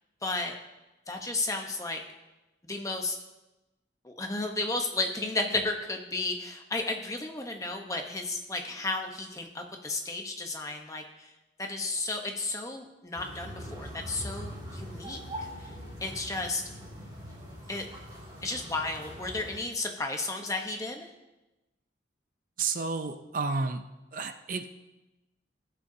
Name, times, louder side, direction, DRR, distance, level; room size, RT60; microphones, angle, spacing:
voice 1, 0.2-0.6 1.1-2.0 2.6-3.2 4.0-11.3 11.6-15.2 15.6-15.7 16.0-16.6 17.7-17.9 18.4-21.1, left 2 dB, 15° left, 3 dB, 0.9 m, -33 dB
sound 1, 13.2-19.6, equal, 25° right, 2.5 m, -42 dB
voice 2, 22.6-23.8 24.1-24.8, right 4 dB, 45° right, 8 dB, 0.5 m, -31 dB
20.0 x 6.7 x 2.8 m, 1.0 s
head